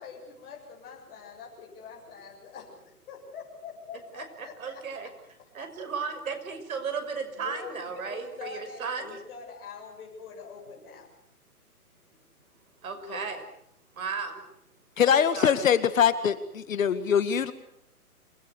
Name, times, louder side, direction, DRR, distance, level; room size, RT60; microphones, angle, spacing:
voice 1, 0.0-2.8 3.1-5.1 5.4-5.5 7.3-11.1 12.9-13.3 15.0-15.3, left 6 dB, 40° left, -1 dB, 7.4 m, -44 dB
voice 2, 4.1-5.1 5.5-9.2 12.8-13.4 14.0-14.4 15.1-15.8, right 5 dB, 65° right, 7 dB, 6.3 m, -35 dB
voice 3, 15.0-17.5, left 8 dB, 60° left, 12 dB, 2.0 m, -23 dB
27.0 x 21.5 x 8.1 m, 0.74 s
hypercardioid pair, 145°, 45 cm